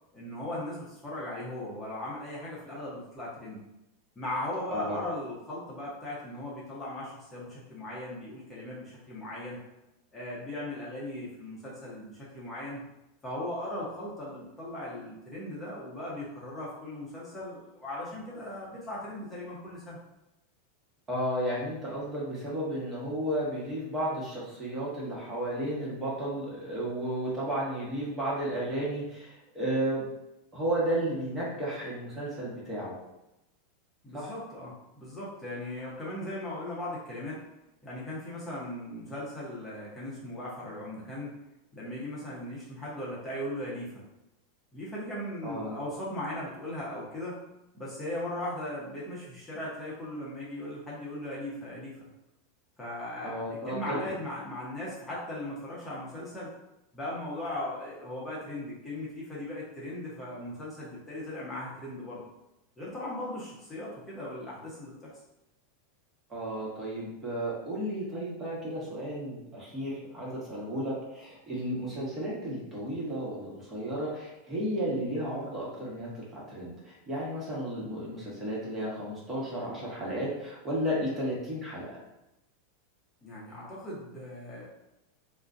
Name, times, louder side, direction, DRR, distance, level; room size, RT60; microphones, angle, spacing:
voice 1, 0.1-3.6 4.2-9.6 10.1-12.8 13.2-20.0 34.0-37.4 37.8-41.3 41.7-43.9 44.7-47.4 47.7-52.0 52.8-53.4 53.7-56.5 56.9-62.2 62.8-65.1 83.2-84.7, left 1 dB, 15° left, -7 dB, 0.9 m, -38 dB
voice 2, 21.1-30.0 30.5-32.9 34.1-34.3 45.4-45.8 53.2-54.1 66.3-82.0, right 1 dB, 25° right, -6 dB, 1.0 m, -33 dB
2.4 x 2.1 x 2.5 m, 0.90 s
hypercardioid pair, 105°, 0 cm